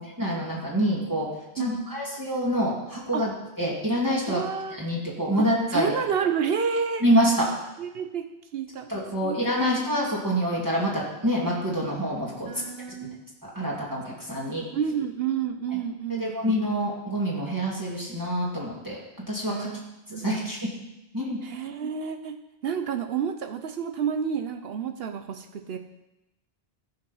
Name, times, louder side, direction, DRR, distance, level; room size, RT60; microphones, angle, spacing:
voice 1, 0.0-3.3 3.6-4.4 4.7-5.9 7.0-7.5 8.9-12.5 13.4-14.7 16.1-19.0 19.3-19.7 20.2-20.6 21.1-21.4, equal, 20° right, -5 dB, 2.1 m, -26 dB
voice 2, 1.6-1.9 3.1-3.3 4.2-4.8 5.4-7.0 7.8-8.3 8.5-8.9 9.2-9.4 12.5-13.2 14.7-16.3 19.5-19.8 20.1-20.5 21.4-22.4 22.6-25.8, right 7 dB, 70° right, 7 dB, 0.9 m, -29 dB
14.0 x 5.4 x 5.5 m, 0.94 s
omnidirectional pair, 1.1 m